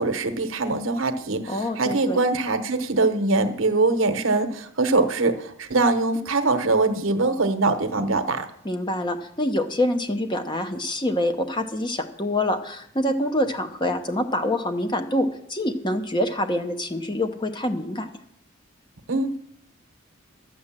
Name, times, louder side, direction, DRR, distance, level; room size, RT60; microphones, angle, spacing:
voice 1, 0.0-8.5 19.1-19.4, right 3 dB, 70° right, 9 dB, 1.0 m, -23 dB
voice 2, 1.5-2.2 8.6-18.1, left 1 dB, 20° left, 7 dB, 0.8 m, -26 dB
12.0 x 7.8 x 7.4 m, 0.72 s
head